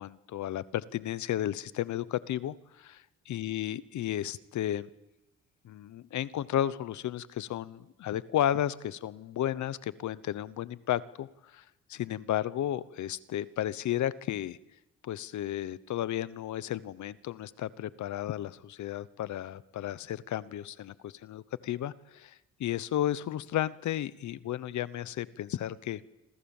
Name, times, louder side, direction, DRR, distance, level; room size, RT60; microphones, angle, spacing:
voice 1, 0.0-2.9 3.3-4.9 5.6-11.6 11.9-14.6 15.0-26.0, left 12 dB, 70° left, 17 dB, 1.0 m, -33 dB
29.5 x 27.0 x 7.3 m, 0.95 s
cardioid pair, 90°, 30 cm